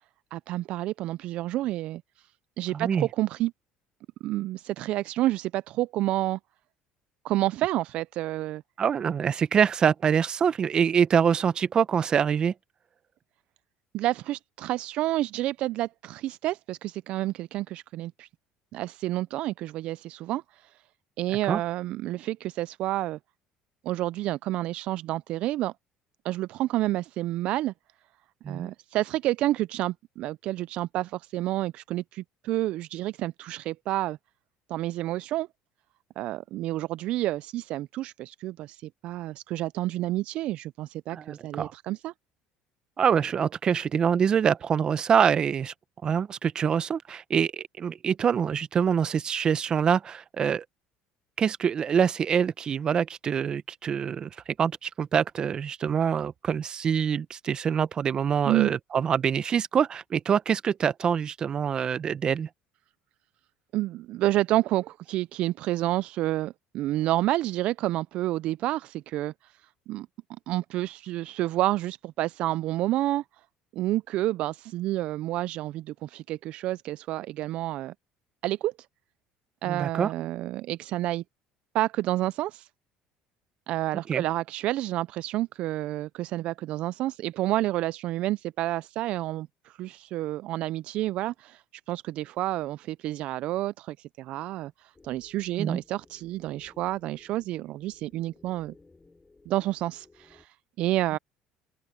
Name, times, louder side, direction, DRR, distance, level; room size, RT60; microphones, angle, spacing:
voice 1, 0.3-2.3 2.6-3.5 4.2-6.4 7.2-8.6 13.9-18.3 18.7-20.8 21.2-23.2 23.8-25.7 26.2-27.7 28.5-34.2 34.7-35.5 36.2-42.1 58.5-58.7 63.7-70.1 70.5-73.2 73.7-77.9 78.4-78.7 79.6-81.2 81.7-82.7 83.7-98.7 99.5-101.2, right 15 dB, 65° right, 0.3 m, -29 dB
voice 2, 2.7-3.1 8.8-12.5 21.5-21.6 28.4-28.7 41.1-41.7 43.0-45.7 46.0-50.6 51.4-54.3 54.6-62.5 79.6-80.1 84.1-84.2 95.6-95.8, right 7 dB, 40° right, 1.0 m, -25 dB
sound 1, 94.9-100.5, left 3 dB, 20° left, 7.0 m, -59 dB
open air
supercardioid pair, 85°, 2 cm